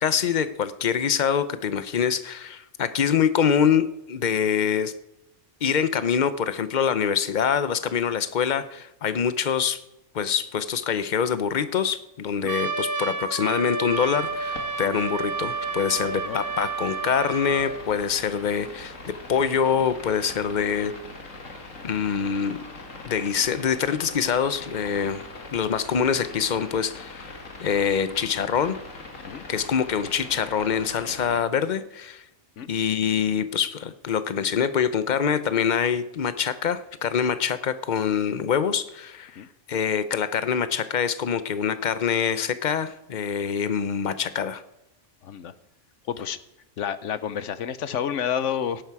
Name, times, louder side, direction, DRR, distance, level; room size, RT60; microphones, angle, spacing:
voice 1, 0.0-4.9 5.6-9.8 10.1-20.9 21.8-22.6 23.0-27.4 27.6-28.7 29.5-32.2 32.7-39.4 39.7-44.6, left 7 dB, 45° left, 13 dB, 0.8 m, -25 dB
Trumpet, 12.5-17.8, right 4 dB, 15° right, 0.9 m, -30 dB
sound 1, 13.9-31.4, left 2 dB, 90° left, 2.2 m, -42 dB
voice 2, 45.2-45.5 46.1-46.4 46.8-48.8, left 8 dB, 75° left, 14 dB, 1.1 m, -29 dB
17.0 x 11.5 x 4.8 m, 0.89 s
omnidirectional pair, 1.3 m